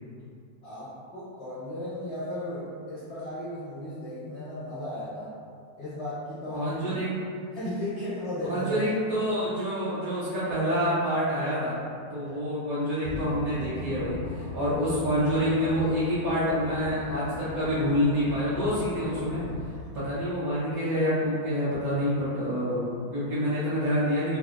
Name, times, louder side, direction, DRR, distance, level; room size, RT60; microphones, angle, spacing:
voice 1, 0.6-5.3 5.8-7.0 7.5-8.9 12.1-12.4, left 1 dB, 75° left, -12 dB, 0.6 m, -35 dB
voice 2, 6.5-7.3 8.4-11.8 12.1-19.4 19.9-24.4, equal, 75° right, -11 dB, 0.8 m, -27 dB
sound 1, 13.0-20.3, left 3 dB, 90° left, 1.5 m, -39 dB
5.4 x 2.1 x 2.4 m, 2.3 s
omnidirectional pair, 2.4 m